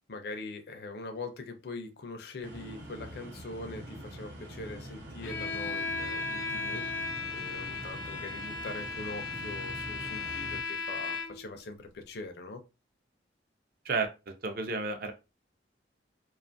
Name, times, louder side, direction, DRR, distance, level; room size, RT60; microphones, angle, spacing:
voice 1, 0.1-7.1 7.3-12.6, left 3 dB, 55° left, 5 dB, 0.5 m, -42 dB
room tone night ambience rumble cricket, 2.4-10.6, right 1 dB, 75° right, 0.8 m, -45 dB
Bowed string instrument, 5.2-11.5, left 4 dB, 90° left, 0.7 m, -36 dB
voice 2, 14.4-15.1, right 4 dB, 50° right, 6 dB, 0.5 m, -31 dB
2.5 x 2.3 x 2.5 m, 0.28 s
head